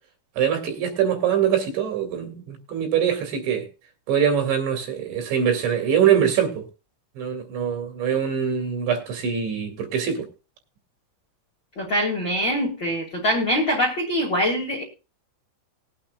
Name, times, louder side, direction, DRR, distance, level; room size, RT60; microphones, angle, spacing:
voice 1, 0.4-3.7 4.1-6.6 7.2-10.3, right 8 dB, 75° right, 4.3 m, -23 dB
voice 2, 11.8-14.8, equal, 40° left, 1.8 m, -23 dB
20.0 x 8.7 x 2.4 m
omnidirectional pair, 5.3 m